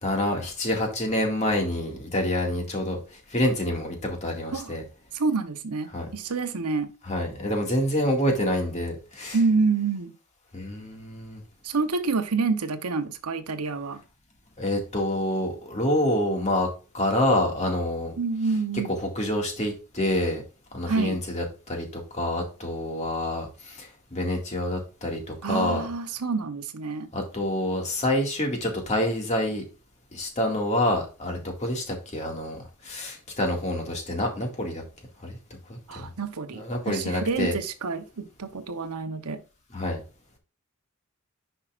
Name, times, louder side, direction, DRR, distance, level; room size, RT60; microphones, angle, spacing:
voice 1, 0.0-4.8 5.9-6.1 7.1-9.4 10.5-11.4 14.6-16.7 16.9-18.1 19.0-20.4 20.7-25.9 27.1-29.6 30.1-34.8 35.2-35.4 35.7-36.1 36.5-37.6 39.7-40.0, left 1 dB, 30° left, 2.0 m, -27 dB
voice 2, 5.1-6.9 9.3-10.1 11.6-14.0 18.2-18.9 20.9-21.2 25.4-27.1 35.9-39.4, right 4 dB, 90° right, 0.8 m, -28 dB
10.0 x 5.5 x 2.5 m
head